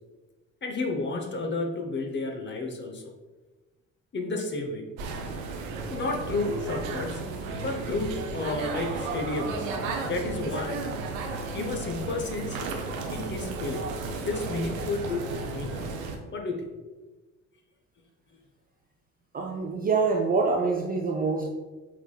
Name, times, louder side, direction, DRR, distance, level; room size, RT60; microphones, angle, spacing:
voice 1, 0.6-3.1 4.1-4.9 5.9-7.2 7.5-9.7 10.0-10.8 11.5-12.6 13.1-13.9 14.3-15.9 16.3-16.7, left 3 dB, 25° left, 3 dB, 0.8 m, -31 dB
sound 1, 5.0-16.2, right 3 dB, 75° right, 0.6 m, -34 dB
voice 2, 19.3-21.5, right 4 dB, 20° right, 1 dB, 0.4 m, -25 dB
5.8 x 3.5 x 2.3 m, 1.2 s
figure-of-eight pair, 50°, 41 cm